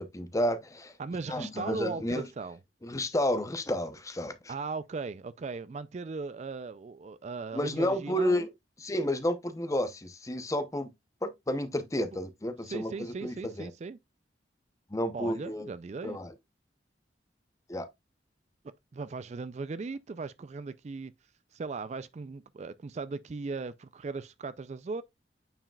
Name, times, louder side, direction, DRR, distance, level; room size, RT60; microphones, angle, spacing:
voice 1, 0.0-0.9 1.3-2.3 2.8-4.5 7.5-8.5 8.8-10.9 11.2-13.7 14.9-15.7 16.0-16.3 17.7-17.9, left 1 dB, 20° left, 0.7 m, -31 dB
voice 2, 1.0-2.6 4.5-8.5 12.7-14.0 15.1-16.2 18.9-21.1 21.5-25.0, right 4 dB, 40° right, 0.3 m, -38 dB
8.9 x 4.8 x 2.3 m
head